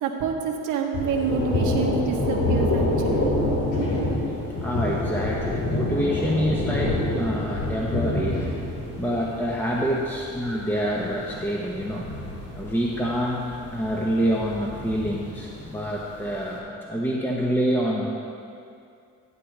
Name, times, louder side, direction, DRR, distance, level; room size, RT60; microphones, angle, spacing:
voice 1, 0.0-3.3, right 6 dB, 85° right, 1 dB, 1.2 m, -27 dB
Thunder, 0.9-16.5, left 1 dB, 85° left, 2.5 m, -28 dB
voice 2, 4.5-8.4 8.9-12.1 12.5-18.1, equal, 5° left, -3 dB, 1.1 m, -27 dB
14.0 x 9.2 x 3.4 m, 2.4 s
cardioid pair, 90°, 30 cm